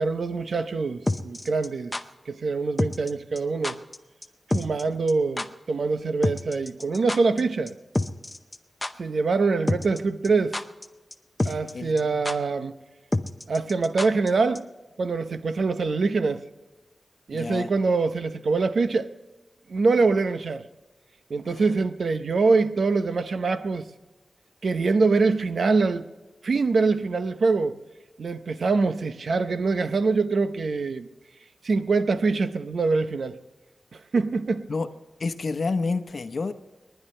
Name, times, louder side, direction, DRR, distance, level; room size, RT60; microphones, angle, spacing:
voice 1, 0.0-2.0 2.3-3.8 4.5-7.7 9.0-10.6 11.4-12.7 13.5-14.7 15.0-16.4 17.3-19.1 19.7-20.6 21.3-23.9 24.6-26.1 26.4-27.8 28.2-31.1 31.6-33.4 33.9-34.7, right 4 dB, 75° right, 0.7 m, -24 dB
sound 1, 1.1-2.0 2.8-3.1 3.4-3.5 3.6-4.0 4.2-4.3 4.5-4.8 5.1-5.2 5.4-5.5 6.2-7.4 7.7-7.8 7.9-8.6 8.8-8.9 9.7-10.0 10.2-10.9 11.1-11.2 11.4-11.7 12.0-12.1 12.3-12.4 13.1-14.3 14.6-14.7, left 2 dB, 20° left, 0.7 m, -27 dB
voice 2, 11.4-12.2 17.3-17.7 21.5-21.7 34.7-34.9 35.2-36.5, left 4 dB, 60° left, 0.9 m, -30 dB
29.5 x 10.5 x 3.3 m
wide cardioid pair, 120°, 0 cm